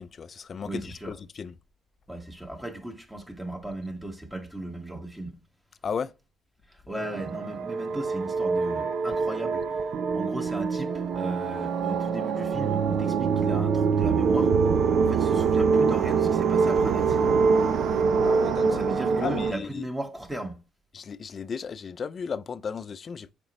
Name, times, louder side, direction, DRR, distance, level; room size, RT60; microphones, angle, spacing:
voice 1, 0.0-1.5 5.8-6.1 18.2-18.8 19.2-19.8 20.9-23.3, left 6 dB, 45° left, 0.5 m, -34 dB
voice 2, 0.7-1.2 2.1-5.4 6.9-9.7 10.1-14.5 15.0-17.4 18.6-20.6, right 1 dB, 10° right, 1.8 m, -36 dB
sound 1, 7.0-19.5, right 5 dB, 65° right, 0.7 m, -24 dB
7.0 x 5.2 x 3.1 m
supercardioid pair, 70°, 0 cm